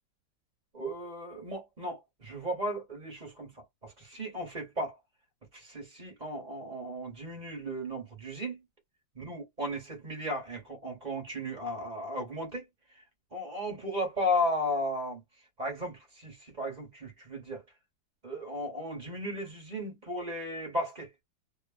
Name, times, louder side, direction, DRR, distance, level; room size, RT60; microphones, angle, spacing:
voice 1, 0.7-3.5 3.8-5.0 5.5-8.6 9.1-12.7 13.3-15.2 15.6-17.6 18.2-21.1, left 1 dB, 25° right, 1.1 m, -35 dB
3.0 x 2.3 x 2.4 m
omnidirectional pair, 2.1 m